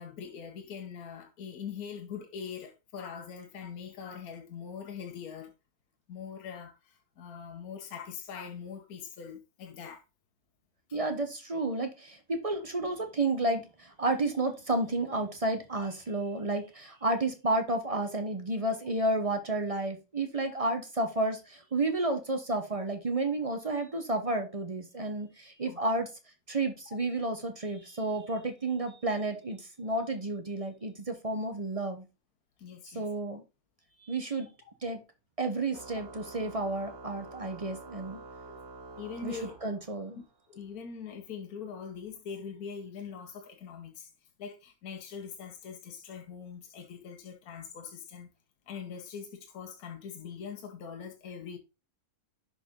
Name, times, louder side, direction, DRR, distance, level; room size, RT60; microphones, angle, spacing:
voice 1, 0.0-5.5 6.1-10.0 10.9-11.0 22.0-22.2 25.6-25.8 32.6-33.1 38.5-38.6 39.0-39.7 40.1-44.1 44.4-48.3 48.7-51.6, left 7 dB, 75° left, 1.4 m, -42 dB
voice 2, 10.9-26.1 26.5-32.1 32.9-33.4 34.0-34.5 34.8-35.0 35.4-38.2 39.2-40.2, right 2 dB, 30° right, 0.7 m, -31 dB
Organ, 35.7-40.2, right 3 dB, 60° right, 1.4 m, -47 dB
6.3 x 4.9 x 3.6 m
omnidirectional pair, 1.6 m